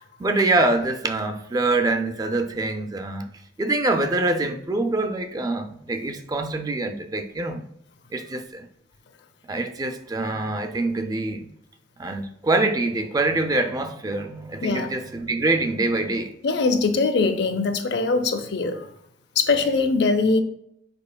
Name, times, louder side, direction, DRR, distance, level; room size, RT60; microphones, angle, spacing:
voice 1, 0.0-3.3 3.6-7.6 8.1-8.7 9.5-11.5 12.0-16.3, right 2 dB, 20° right, 0.4 m, -25 dB
voice 2, 16.4-18.9 19.4-20.4, left 3 dB, 70° left, 0.5 m, -22 dB
5.3 x 4.4 x 2.2 m
head